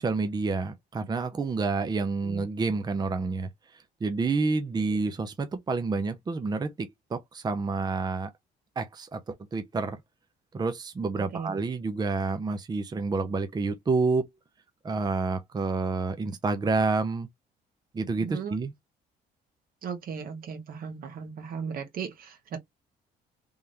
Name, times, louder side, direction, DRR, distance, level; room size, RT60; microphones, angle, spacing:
voice 1, 0.0-8.3 8.8-10.0 10.5-14.3 14.8-17.3 17.9-18.7, right 3 dB, 25° right, 0.7 m, -29 dB
voice 2, 11.2-11.5 18.2-18.6 19.8-22.6, right 6 dB, 60° right, 1.6 m, -37 dB
3.6 x 3.3 x 2.8 m
cardioid pair, 110°, 17 cm